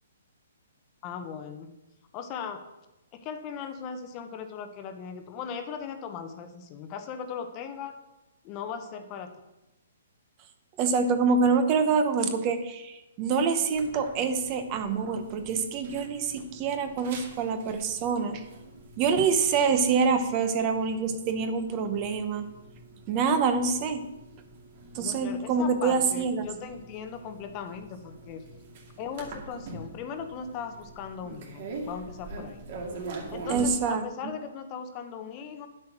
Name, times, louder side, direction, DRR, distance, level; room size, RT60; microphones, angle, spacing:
voice 1, 1.0-1.7 2.1-2.6 3.1-8.0 8.4-9.3 25.0-28.4 29.0-32.6 33.3-35.7, left 7 dB, 25° left, 8 dB, 0.9 m, -38 dB
voice 2, 10.8-18.4 19.0-22.4 23.1-24.1 24.9-26.5 33.5-34.0, right 5 dB, 25° right, 9 dB, 0.9 m, -26 dB
sound 1, 13.8-33.7, right 3 dB, 45° right, 2.4 m, -44 dB
10.5 x 7.8 x 6.1 m, 0.97 s
hypercardioid pair, 165°, 0 cm